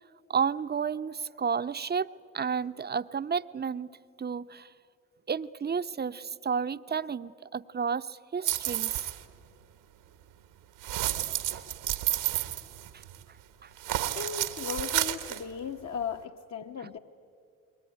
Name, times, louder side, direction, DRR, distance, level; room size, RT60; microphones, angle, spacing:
voice 1, 0.3-2.1 2.3-3.9 4.2-4.7 5.3-8.9 13.6-13.7, right 6 dB, 25° right, 12 dB, 0.8 m, -31 dB
sound 1, 8.4-9.2 10.8-13.2 13.8-15.4, right 14 dB, 75° right, 1.5 m, -31 dB
voice 2, 14.1-17.0, left 7 dB, 45° left, 4 dB, 1.2 m, -36 dB
28.0 x 21.5 x 9.8 m, 2.4 s
hypercardioid pair, 50°, 39 cm